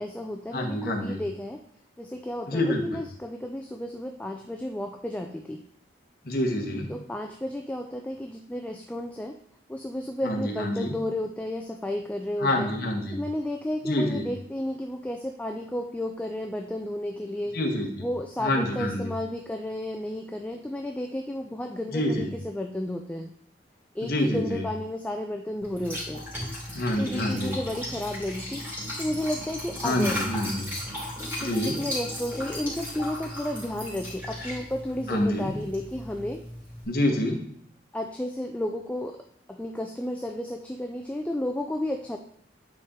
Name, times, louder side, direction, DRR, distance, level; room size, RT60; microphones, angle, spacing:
voice 1, 0.0-1.6 2.0-5.6 6.9-9.4 9.7-12.7 13.1-17.6 18.0-23.3 23.9-26.2 27.0-30.2 31.2-36.4 37.9-39.2 39.5-42.2, left 1 dB, 5° left, 4 dB, 0.3 m, -32 dB
voice 2, 0.5-1.2 2.5-2.8 6.2-6.9 10.2-10.9 12.4-13.2 13.8-14.3 17.5-17.9 18.4-19.1 21.9-22.3 24.0-24.6 26.7-27.6 29.8-30.7 31.4-31.8 35.1-35.5 36.9-37.4, left 1 dB, 50° left, 2 dB, 1.2 m, -27 dB
Liquid, 25.6-36.8, left 1 dB, 10° right, 3.2 m, -36 dB
9.5 x 4.2 x 3.7 m, 0.64 s
head